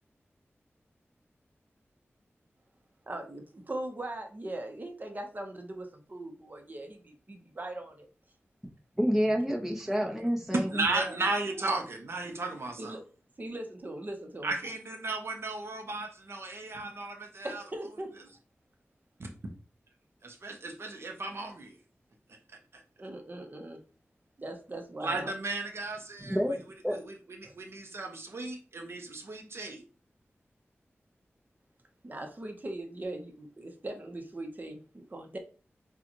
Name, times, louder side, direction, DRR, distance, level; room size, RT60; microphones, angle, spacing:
voice 1, 3.1-8.1 10.9-11.1 12.8-13.0 13.4-14.5 17.4-18.1 23.0-23.8 24.4-25.3 27.4-27.5 32.0-35.4, right 1 dB, 40° right, 3 dB, 0.9 m, -40 dB
voice 2, 8.6-10.9 26.3-26.5 26.8-27.0, equal, 5° right, 0 dB, 1.0 m, -29 dB
voice 3, 10.5-13.0 14.4-17.6 20.2-21.8 22.7-22.8 25.0-26.4 26.9-27.1 27.5-29.8, right 3 dB, 65° right, 3 dB, 0.8 m, -34 dB
6.4 x 2.4 x 3.0 m, 0.37 s
wide cardioid pair, 100°, 5 cm